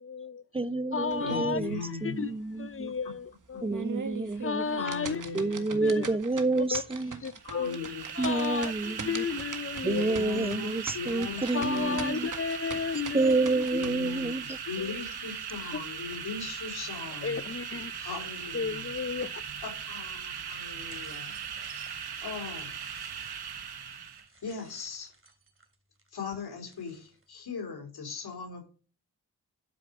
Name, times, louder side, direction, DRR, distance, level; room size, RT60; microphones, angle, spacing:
voice 1, 0.0-0.4 0.9-1.6 2.0-2.3 2.6-3.9 4.4-5.2 5.8-6.1 6.7-6.8 7.2-7.8 8.1-10.2 11.5-13.7 14.8-15.0 15.6-15.8 17.2-17.9 18.5-19.4, left 6 dB, 35° left, 0.8 m, -33 dB
voice 2, 0.5-2.9 3.6-4.6 5.3-7.2 8.2-9.2 9.8-12.3 13.1-14.6, right 3 dB, 15° right, 0.7 m, -29 dB
sound 1, 1.1-1.8 2.2-2.3 2.8-2.9 3.5-13.9, right 5 dB, 55° right, 1.8 m, -41 dB
voice 3, 1.2-2.2 4.3-6.1 7.4-8.5 9.8-12.0 13.7-17.4 18.0-18.9 19.6-21.3 22.2-22.8 24.4-25.1 26.1-28.6, left 5 dB, 80° left, 3.5 m, -39 dB
sound 2, 7.4-24.3, right 7 dB, 85° right, 1.2 m, -39 dB
sound 3, 20.4-27.3, right 3 dB, 35° right, 2.9 m, -56 dB
12.0 x 5.1 x 6.3 m
cardioid pair, 50°, 37 cm